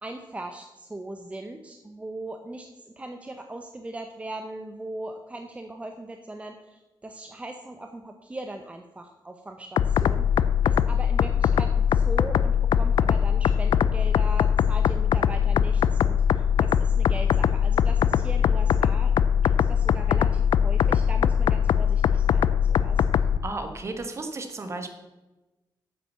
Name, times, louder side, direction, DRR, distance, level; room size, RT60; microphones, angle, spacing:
voice 1, 0.0-10.3 10.6-19.1 19.4-23.2, right 2 dB, 15° right, 5 dB, 0.7 m, -39 dB
sound 1, 9.8-23.4, left 8 dB, 90° left, 0.4 m, -22 dB
voice 2, 23.4-24.9, right 2 dB, 35° right, 6 dB, 1.3 m, -33 dB
8.7 x 7.5 x 6.7 m, 1.1 s
wide cardioid pair, 155°, 8 cm